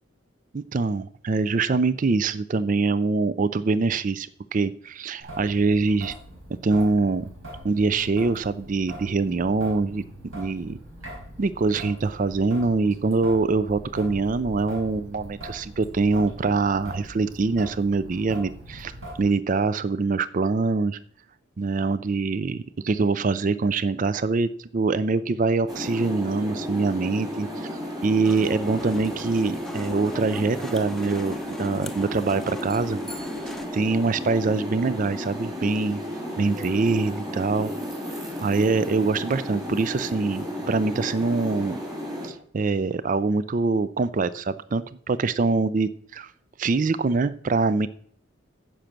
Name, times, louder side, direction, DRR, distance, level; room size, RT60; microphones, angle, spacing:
voice 1, 0.5-6.1 6.5-7.3 7.6-10.8 11.4-18.9 19.2-21.0 21.6-33.0 33.7-36.0 36.4-37.7 38.4-41.8 42.2-46.3 46.6-47.9, right 3 dB, 40° right, 16 dB, 0.4 m, -24 dB
Traffic noise roadway noise / Drip / Trickle dribble, 5.2-19.2, equal, 75° right, 5.2 m, -42 dB
sound 1, 25.7-42.3, left 1 dB, 20° right, 3.3 m, -33 dB
sound 2, 28.2-33.7, left 1 dB, ahead, 0.7 m, -40 dB
10.0 x 7.5 x 5.9 m, 0.63 s
head